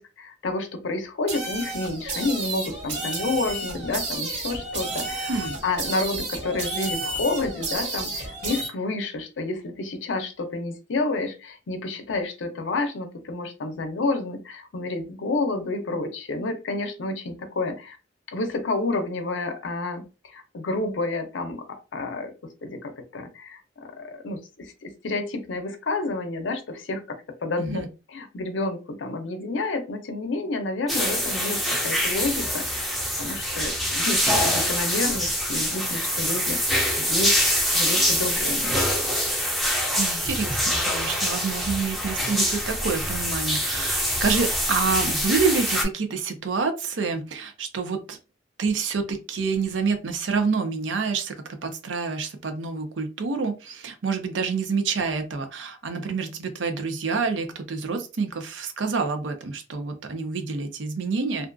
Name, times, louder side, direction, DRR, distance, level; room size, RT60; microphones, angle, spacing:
voice 1, 0.0-5.3 5.6-18.0 18.3-22.3 22.6-27.0 27.4-27.8 28.1-37.4 37.7-38.8, left 2 dB, 85° left, 7 dB, 0.6 m, -30 dB
sound 1, 1.3-8.7, right 2 dB, 65° right, 1.3 m, -31 dB
sound 2, 30.9-45.8, equal, ahead, 0.4 m, -25 dB
voice 2, 40.0-48.2 48.6-61.5, right 4 dB, 85° right, 6 dB, 0.6 m, -27 dB
2.4 x 2.3 x 2.5 m, 0.31 s
head